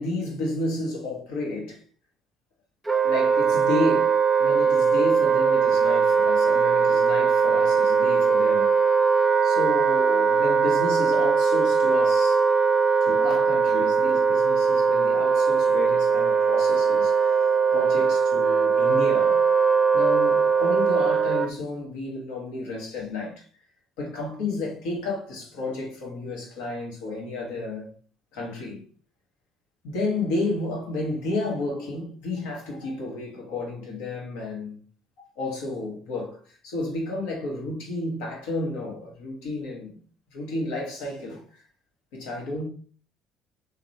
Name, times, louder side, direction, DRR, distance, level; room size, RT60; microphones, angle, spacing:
voice 1, 0.0-1.8 3.0-8.7 9.4-12.4 13.0-19.4 19.9-23.4 24.0-27.9 28.3-28.8 29.8-34.8 35.4-40.0 40.3-41.6 42.1-42.7, left 2 dB, 85° left, 0.9 m, -31 dB
Wind instrument woodwind instrument, 2.9-21.5, right 5 dB, 15° right, 0.5 m, -20 dB
2.9 x 2.0 x 2.6 m
supercardioid pair, 70°, 0 cm